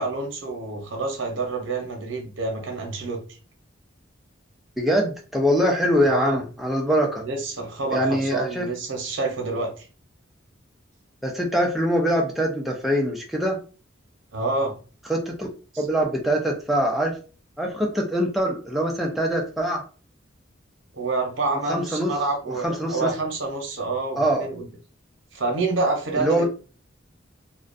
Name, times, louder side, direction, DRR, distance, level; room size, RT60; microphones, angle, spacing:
voice 1, 0.0-3.2 6.0-6.4 7.2-9.9 14.3-14.7 20.9-24.7 25.3-26.4, right 3 dB, 70° right, 2 dB, 0.7 m, -27 dB
voice 2, 4.8-7.2 7.9-8.7 11.2-13.6 15.1-15.5 15.8-17.2 17.6-19.8 21.5-22.1 22.5-23.1 24.2-24.4 26.2-26.4, equal, ahead, -1 dB, 0.4 m, -23 dB
2.4 x 2.1 x 2.5 m, 0.36 s
head